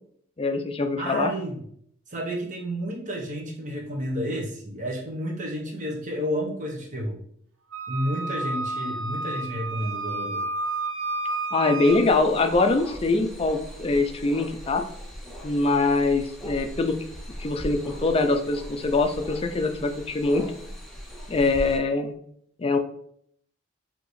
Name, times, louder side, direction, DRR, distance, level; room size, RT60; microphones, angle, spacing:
voice 1, 0.4-1.3 11.5-14.8 15.4-17.0 17.4-20.5 21.3-22.1 22.6-22.8, left 3 dB, 30° left, 6 dB, 0.4 m, -23 dB
voice 2, 1.0-1.6 2.1-7.2 7.9-10.4, equal, 40° right, 0 dB, 0.8 m, -31 dB
Wind instrument woodwind instrument, 7.7-12.0, right 2 dB, 70° right, 0.6 m, -31 dB
sound 1, 11.8-21.8, equal, ahead, 0.8 m, -40 dB
5.0 x 2.7 x 3.1 m, 0.66 s
head